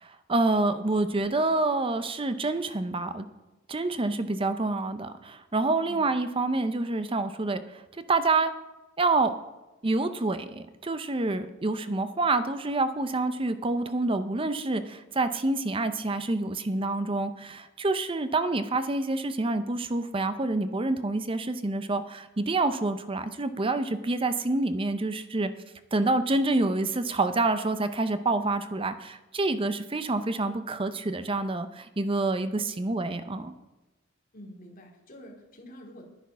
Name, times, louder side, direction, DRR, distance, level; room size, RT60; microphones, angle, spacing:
voice 1, 0.0-3.3 3.7-7.8 8.1-8.5 9.0-9.3 9.8-25.5 25.9-33.5, right 2 dB, 25° right, 10 dB, 0.6 m, -27 dB
voice 2, 34.3-36.1, equal, 45° left, -1 dB, 2.7 m, -47 dB
11.0 x 10.0 x 5.6 m, 1.1 s
head